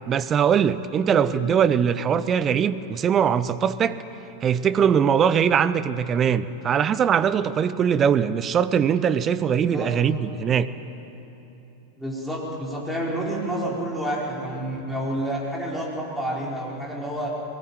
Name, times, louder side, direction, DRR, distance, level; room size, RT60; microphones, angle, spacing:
voice 1, 0.1-4.0 4.4-10.7, right 8 dB, 25° right, 15 dB, 0.8 m, -21 dB
voice 2, 1.1-1.4 9.7-9.9 12.0-17.3, right 1 dB, ahead, -5 dB, 4.7 m, -29 dB
22.0 x 20.0 x 9.1 m, 3.0 s
figure-of-eight pair, 90°, 0 cm